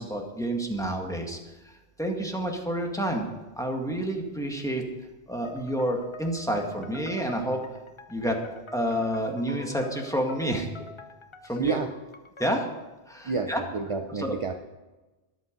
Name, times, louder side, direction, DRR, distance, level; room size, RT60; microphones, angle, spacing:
voice 1, 0.0-3.3 3.6-4.8 5.3-7.6 8.1-8.4 8.7-10.7 11.4-11.8 12.4-12.7 13.1-13.6 14.2-14.3, right 1 dB, 5° left, 1 dB, 1.9 m, -29 dB
sound 1, 5.4-12.8, left 2 dB, 30° left, 0.9 m, -46 dB
voice 2, 11.6-11.9 13.2-14.5, right 5 dB, 35° right, 6 dB, 0.7 m, -29 dB
13.5 x 11.0 x 5.3 m, 1.1 s
omnidirectional pair, 1.1 m